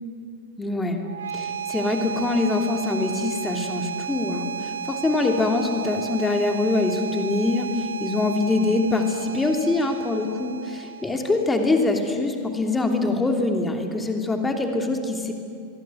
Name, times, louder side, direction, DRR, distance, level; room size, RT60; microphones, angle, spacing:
voice 1, 0.6-1.0 1.3-15.3, left 3 dB, 10° left, 4 dB, 3.0 m, -24 dB
sound 1, 1.0-12.0, right 7 dB, 65° right, 0.7 m, -33 dB
26.5 x 23.0 x 8.0 m, 2.3 s
figure-of-eight pair, 90°, 0 cm